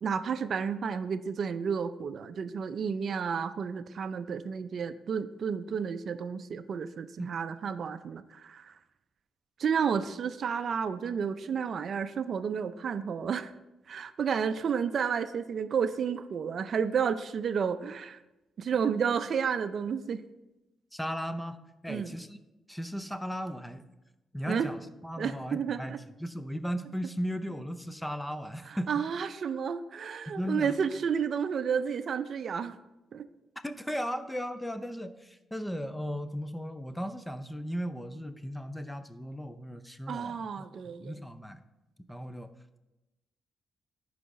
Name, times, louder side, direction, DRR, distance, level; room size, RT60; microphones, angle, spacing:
voice 1, 0.0-8.7 9.6-13.5 13.9-18.2 18.6-20.2 21.9-22.1 24.5-24.7 25.2-26.0 28.7-32.8 33.1-33.2 40.1-41.1, right 6 dB, 60° right, 12 dB, 0.4 m, -31 dB
voice 2, 20.9-21.6 21.8-22.4 22.7-23.8 24.3-28.9 30.3-30.8 33.6-40.7 41.0-41.6 42.1-42.5, equal, 5° left, 10 dB, 0.6 m, -36 dB
11.0 x 4.8 x 4.2 m, 0.99 s
cardioid pair, 80°, 0 cm